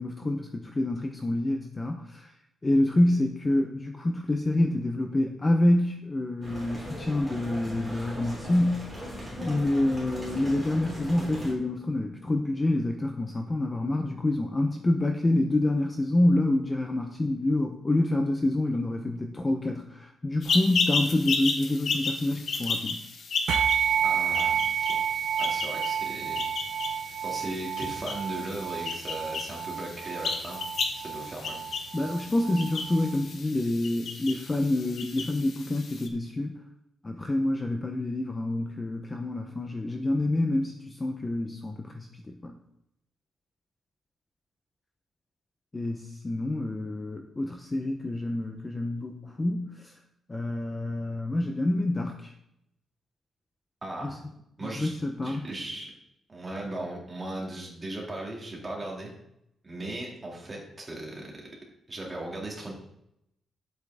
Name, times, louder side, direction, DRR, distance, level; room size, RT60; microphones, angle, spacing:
voice 1, 0.0-2.3 2.6-9.0 9.4-23.0 31.9-36.6 37.0-42.6 45.7-49.9 50.3-52.3 54.0-54.1 54.6-55.4, left 1 dB, 15° left, 4 dB, 0.6 m, -27 dB
sound 1, 6.4-11.5, equal, ahead, 3.7 m, -39 dB
Chick chirping, 20.4-36.1, left 4 dB, 55° left, 1.2 m, -34 dB
sound 2, 23.5-33.2, right 9 dB, 80° right, 0.4 m, -30 dB
voice 2, 24.0-25.0 25.4-26.4 27.2-30.7 31.0-31.6 53.8-54.2 54.6-54.9 55.2-55.9 56.3-59.1 59.6-61.3 61.9-62.7, right 1 dB, 20° right, -2 dB, 2.4 m, -37 dB
10.5 x 8.1 x 3.5 m, 0.79 s
wide cardioid pair, 165°, 0 cm